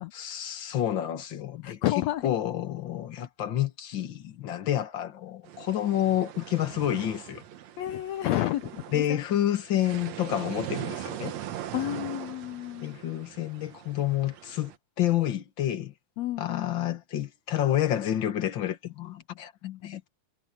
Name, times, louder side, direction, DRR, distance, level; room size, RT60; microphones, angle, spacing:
voice 1, 0.1-1.8 2.2-7.4 8.9-11.3 12.8-14.7 15.0-15.9 16.4-20.0, left 11 dB, 50° left, 1.5 m, -29 dB
voice 2, 1.6-2.3 7.8-9.2 11.7-13.0 16.2-16.8, left 14 dB, 85° left, 1.5 m, -30 dB
sound 1, 5.4-14.8, right 11 dB, 60° right, 2.2 m, -40 dB
omnidirectional pair, 3.9 m